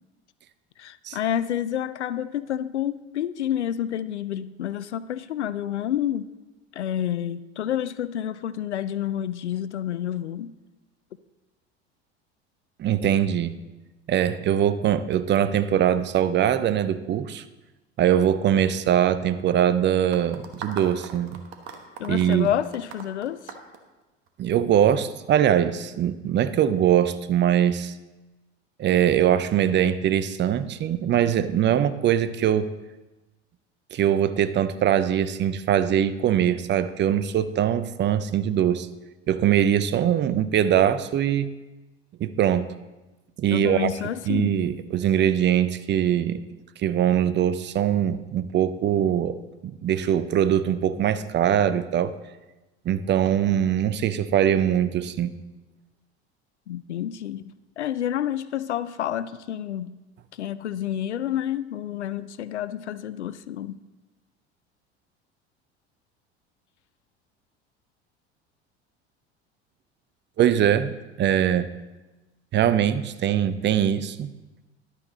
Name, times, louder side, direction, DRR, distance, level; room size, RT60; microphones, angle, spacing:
voice 1, 0.8-6.3 6.7-10.5 22.0-23.5 43.5-44.6 56.7-60.0 60.3-63.8, left 11 dB, 85° left, 16 dB, 0.5 m, -29 dB
voice 2, 12.8-13.6 14.1-17.4 18.0-21.4 22.1-22.5 24.4-27.9 28.8-32.7 33.9-38.9 39.3-41.5 42.2-42.7 43.4-43.9 44.3-46.4 46.8-49.4 49.8-52.1 52.9-55.3 70.4-70.9 71.2-71.7 72.5-74.3, right 10 dB, 35° right, 14 dB, 0.6 m, -22 dB
sound 1, 20.1-24.5, right 6 dB, 65° right, 1.3 m, -40 dB
11.5 x 8.2 x 4.0 m, 1.1 s
hypercardioid pair, 70°, 33 cm